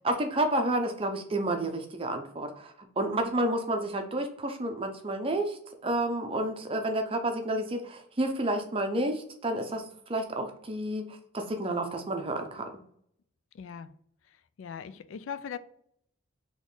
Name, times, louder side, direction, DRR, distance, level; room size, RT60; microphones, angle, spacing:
voice 1, 0.0-12.7, right 1 dB, 25° right, 0.6 m, -30 dB
voice 2, 13.5-13.9 14.6-15.6, left 7 dB, 70° left, 0.3 m, -39 dB
4.1 x 3.0 x 3.8 m
head